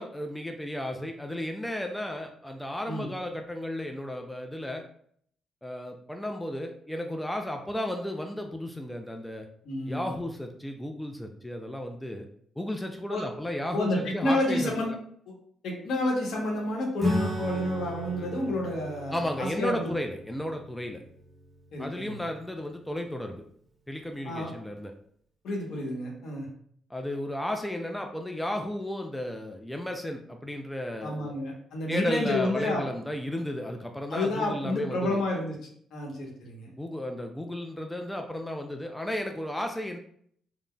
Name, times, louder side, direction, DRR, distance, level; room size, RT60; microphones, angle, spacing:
voice 1, 0.0-4.9 5.6-9.5 9.9-12.3 12.6-14.7 19.1-21.0 21.8-23.4 23.9-24.9 26.9-31.3 31.9-35.2 36.8-40.0, left 1 dB, 5° left, 3 dB, 0.3 m, -34 dB
voice 2, 9.6-10.1 13.1-13.2 13.7-14.9 15.6-19.9 21.7-22.2 24.2-24.5 25.4-26.5 31.0-32.8 34.1-35.5 35.9-36.7, left 1 dB, 75° left, -1 dB, 0.9 m, -30 dB
Acoustic guitar / Strum, 17.0-22.9, equal, 10° right, 1.0 m, -36 dB
3.7 x 2.0 x 2.2 m, 0.63 s
cardioid pair, 90°, 0 cm